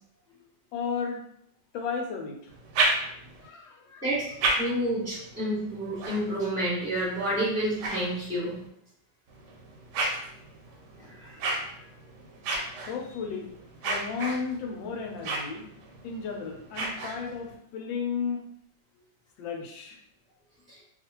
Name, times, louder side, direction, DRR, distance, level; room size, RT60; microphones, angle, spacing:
voice 1, 0.7-1.2 1.7-2.4 3.4-4.0 12.9-13.5 13.8-15.7 16.0-18.4 19.4-20.0, left 5 dB, 75° left, 2 dB, 1.3 m, -33 dB
sound 1, 2.5-3.5 4.1-8.7 9.3-17.6, right 2 dB, 70° right, 1.1 m, -34 dB
voice 2, 4.6-8.6 11.0-11.6, right 1 dB, 10° right, -11 dB, 0.9 m, -29 dB
3.0 x 2.4 x 2.9 m, 0.69 s
omnidirectional pair, 2.2 m